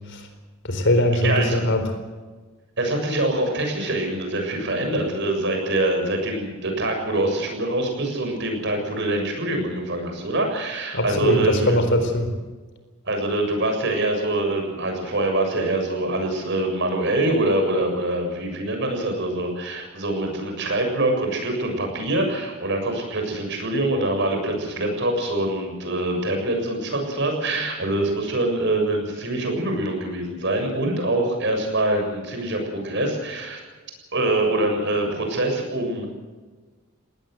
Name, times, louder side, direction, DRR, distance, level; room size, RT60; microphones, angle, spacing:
voice 1, 0.6-1.8 10.9-12.3, left 1 dB, 55° left, 7 dB, 4.3 m, -21 dB
voice 2, 1.2-1.6 2.8-11.8 13.1-33.6 34.1-36.1, right 2 dB, 55° right, 4 dB, 7.1 m, -24 dB
21.0 x 18.0 x 8.0 m, 1.3 s
head